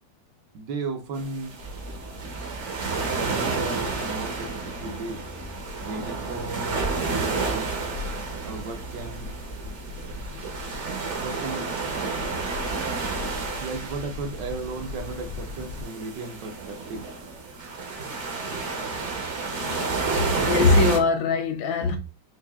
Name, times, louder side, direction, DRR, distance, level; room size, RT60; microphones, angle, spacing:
voice 1, 0.5-1.6 3.2-5.2 5.8-6.9 7.3-7.9 8.4-9.4 11.2-11.7 13.6-17.1, right 3 dB, 75° right, 1.2 m, -35 dB
sound 1, 1.1-21.0, right 4 dB, 55° right, 0.8 m, -31 dB
sound 2, 1.6-15.8, left 1 dB, 60° left, 1.0 m, -40 dB
voice 2, 19.5-20.0 20.4-22.0, left 3 dB, 80° left, 1.4 m, -22 dB
4.7 x 2.6 x 2.3 m
omnidirectional pair, 2.1 m